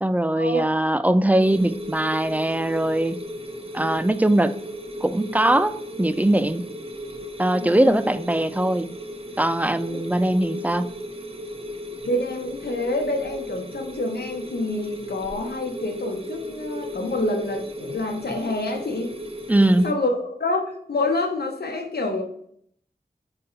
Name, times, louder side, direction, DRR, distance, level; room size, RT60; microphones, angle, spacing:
voice 1, 0.0-3.2 3.7-4.5 5.0-6.7 7.4-8.9 9.4-10.9 19.5-19.9, right 1 dB, 10° right, 13 dB, 0.3 m, -21 dB
sound 1, 1.4-19.9, equal, 35° right, 0.7 m, -36 dB
voice 2, 7.5-8.0 12.0-19.1 19.8-22.2, left 2 dB, 80° left, 2 dB, 1.0 m, -27 dB
9.2 x 4.1 x 2.7 m, 0.66 s
wide cardioid pair, 65°, 16 cm